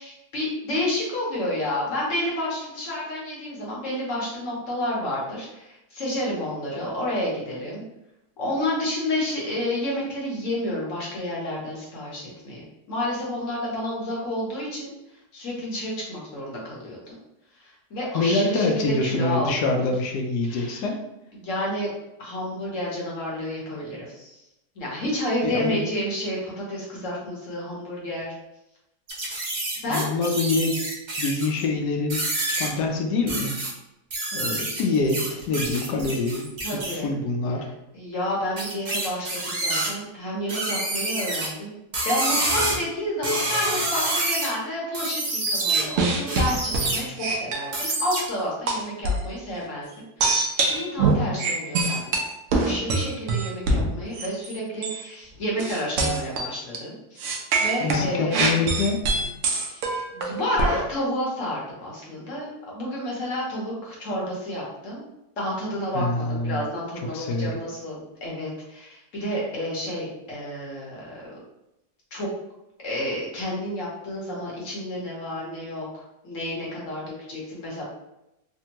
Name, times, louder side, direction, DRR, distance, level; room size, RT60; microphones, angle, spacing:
voice 1, 0.0-7.8 8.4-14.9 15.3-17.2 17.6-19.9 20.5-20.9 21.3-21.9 22.2-24.4 24.7-28.3 29.8-30.0 36.6-37.1 37.9-41.7 42.0-49.9 50.2-52.2 52.6-57.3 57.6-58.5 59.6-59.8 60.1-65.0 65.4-71.3 72.1-72.3 72.8-75.9 76.2-77.8, left 1 dB, 55° left, -4 dB, 1.1 m, -30 dB
voice 2, 18.1-21.0 25.4-25.8 29.9-30.8 31.2-32.2 32.6-33.6 34.3-36.5 37.0-37.7 57.8-59.0 65.9-66.6 67.1-67.5, left 3 dB, 80° left, 2 dB, 1.2 m, -25 dB
sound 1, 29.1-31.6 32.1-32.7 33.3-33.7 34.1-37.0 38.6-39.9 40.5-41.5 41.9-42.8 43.2-44.5 44.9-45.8 46.3-47.0 47.7-48.2, right 2 dB, 85° right, 0.4 m, -27 dB
sound 2, 45.6-48.3 48.7-49.3 50.2-54.6 54.8-55.0 55.6-56.8 57.2-60.8, right 3 dB, 70° right, 0.7 m, -24 dB
3.4 x 2.2 x 2.8 m, 0.89 s
omnidirectional pair, 1.7 m